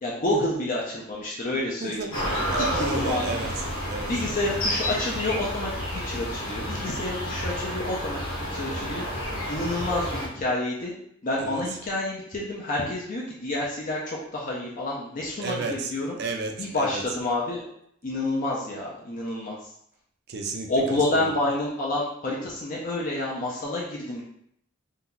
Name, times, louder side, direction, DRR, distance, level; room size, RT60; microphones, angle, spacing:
voice 1, 0.0-3.4 4.1-9.1 9.5-10.9 11.2-16.2 16.6-17.6 18.0-19.7 20.7-24.2, left 2 dB, 40° left, -4 dB, 0.5 m, -29 dB
voice 2, 1.8-4.1 11.4-11.6 15.4-15.9 16.2-17.0 20.3-21.3, right 3 dB, 50° right, 3 dB, 0.4 m, -33 dB
sound 1, 2.1-10.3, equal, 80° left, 0.8 m, -30 dB
2.7 x 2.2 x 3.7 m, 0.71 s
head